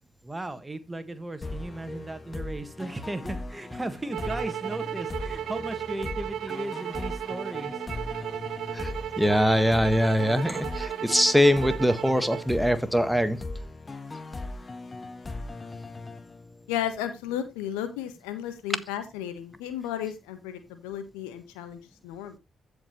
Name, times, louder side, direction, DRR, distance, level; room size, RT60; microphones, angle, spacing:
voice 1, 0.2-7.8, right 2 dB, 20° right, 11 dB, 1.8 m, -36 dB
sound 1, 1.4-16.9, left 2 dB, 35° left, 1.7 m, -39 dB
sound 2, 4.1-12.5, right 10 dB, 65° right, 0.5 m, -35 dB
voice 2, 9.2-13.4, equal, ahead, 11 dB, 1.5 m, -22 dB
voice 3, 16.7-22.4, left 10 dB, 80° left, 9 dB, 1.3 m, -34 dB
15.5 x 5.2 x 3.1 m, 0.23 s
hypercardioid pair, 40°, 0 cm